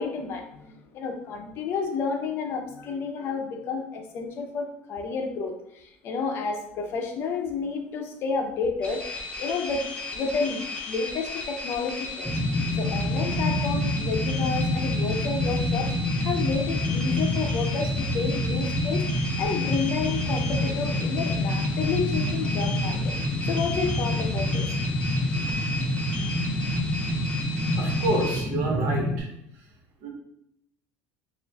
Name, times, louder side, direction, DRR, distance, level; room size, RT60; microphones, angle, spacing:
voice 1, 0.0-9.8 10.1-12.3 12.8-15.9 16.2-23.1 23.4-24.7, left 5 dB, 45° left, 4 dB, 0.6 m, -30 dB
sound 1, 8.8-28.4, left 3 dB, 25° left, 0.9 m, -35 dB
sound 2, 12.3-29.2, left 1 dB, ahead, 0.5 m, -27 dB
voice 2, 27.7-29.7 30.0-30.1, right 1 dB, 65° right, 0 dB, 1.2 m, -29 dB
6.4 x 2.5 x 2.3 m, 0.76 s
cardioid pair, 140°, 6 cm